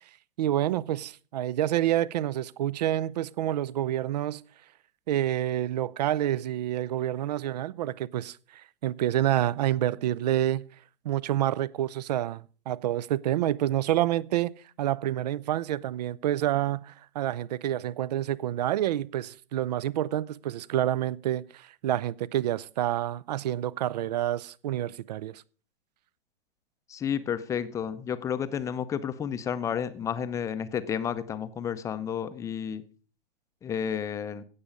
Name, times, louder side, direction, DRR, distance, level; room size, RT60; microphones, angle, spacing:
voice 1, 0.4-4.4 5.1-10.7 11.0-14.5 14.8-25.4, right 12 dB, 45° right, 0.5 m, -28 dB
voice 2, 26.9-32.8 33.6-34.4, left 8 dB, 10° left, 0.6 m, -31 dB
16.5 x 7.1 x 5.1 m
figure-of-eight pair, 115°, 29 cm